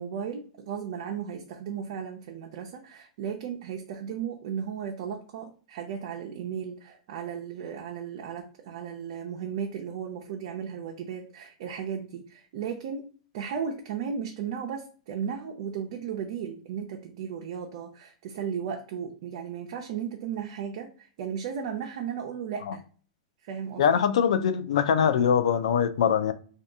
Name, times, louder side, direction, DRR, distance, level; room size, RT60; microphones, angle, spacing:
voice 1, 0.0-22.8 23.4-23.8, right 7 dB, 55° right, 0.5 m, -35 dB
voice 2, 23.8-26.3, left 7 dB, 80° left, 0.4 m, -23 dB
2.7 x 2.3 x 3.5 m
supercardioid pair, 150°, 4 cm